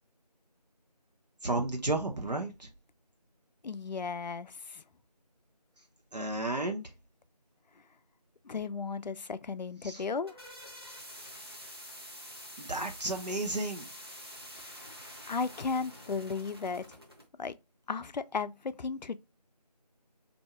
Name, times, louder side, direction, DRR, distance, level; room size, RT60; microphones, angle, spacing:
voice 1, 1.4-2.7 6.1-6.8 9.8-10.0 12.6-13.8, right 2 dB, 75° right, 0.9 m, -32 dB
voice 2, 3.6-4.8 8.5-10.4 14.7-14.8 15.3-16.9 17.4-17.6 17.9-19.2, left 5 dB, 85° left, 0.4 m, -35 dB
sound 1, 10.1-17.3, equal, 35° right, 0.7 m, -47 dB
2.7 x 2.3 x 4.1 m
figure-of-eight pair, 175°, 21 cm